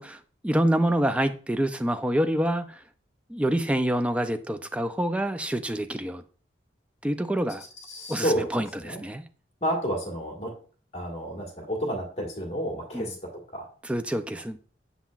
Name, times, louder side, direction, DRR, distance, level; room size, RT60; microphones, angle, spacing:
voice 1, 0.0-2.7 3.3-6.2 7.0-7.6 8.1-9.2 12.9-13.1 13.8-14.6, right 1 dB, 5° right, 0.3 m, -26 dB
voice 2, 7.9-9.0 9.6-10.5 10.9-13.1 13.5-13.7, equal, 35° left, 1.6 m, -30 dB
7.0 x 5.7 x 2.4 m
head